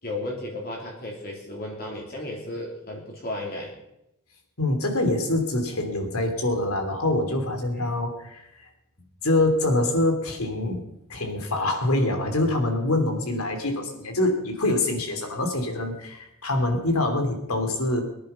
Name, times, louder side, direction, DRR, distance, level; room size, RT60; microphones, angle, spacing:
voice 1, 0.0-3.7 7.7-7.9, left 1 dB, 45° left, -2 dB, 3.1 m, -34 dB
voice 2, 4.6-8.7 9.2-10.8 11.1-18.0, left 2 dB, 80° left, 6 dB, 3.0 m, -25 dB
22.5 x 10.5 x 5.6 m, 0.85 s
head